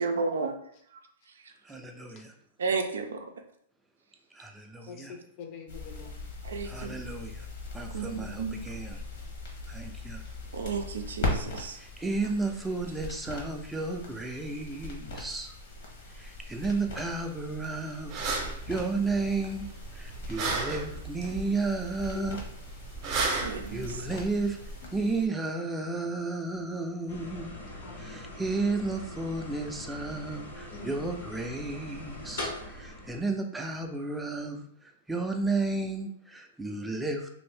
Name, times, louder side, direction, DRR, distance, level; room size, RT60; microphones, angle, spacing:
voice 1, 0.0-0.6 0.9-1.0 1.4-1.5 2.6-3.3 6.4-7.0 7.9-8.6 10.5-11.8 23.3-24.1, right 4 dB, 90° right, 6 dB, 0.4 m, -33 dB
voice 2, 1.6-2.3 4.3-5.1 6.7-7.5 7.7-9.0 9.7-10.2 11.8-15.5 16.1-19.7 19.9-22.4 23.3-24.6 24.9-27.5 27.9-37.3, right 3 dB, 5° right, 3 dB, 0.4 m, -33 dB
voice 3, 4.9-6.2 22.1-22.2 24.8-25.2 27.8-28.2 30.7-31.1, left 5 dB, 45° left, 3 dB, 0.6 m, -45 dB
sound 1, 5.7-25.3, left 2 dB, 65° left, 0.9 m, -40 dB
sound 2, 18.1-24.9, right 3 dB, 40° right, 0.7 m, -35 dB
sound 3, 27.1-33.2, left 1 dB, 85° left, 1.0 m, -42 dB
2.6 x 2.5 x 3.3 m, 0.69 s
hypercardioid pair, 130°, 0 cm